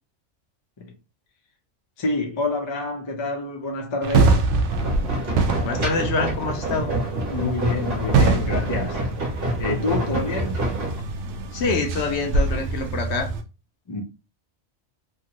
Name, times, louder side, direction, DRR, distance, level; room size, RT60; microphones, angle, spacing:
voice 1, 2.0-4.5 7.3-9.1 9.6-10.8 13.9-14.0, left 3 dB, 30° left, 0.6 m, -28 dB
sound 1, 4.0-13.4, right 3 dB, 75° right, 0.9 m, -25 dB
sound 2, 4.7-11.0, right 1 dB, 55° right, 1.2 m, -28 dB
voice 2, 5.6-6.9 11.5-13.3, left 4 dB, 70° left, 0.8 m, -25 dB
2.9 x 2.4 x 2.9 m
omnidirectional pair, 1.2 m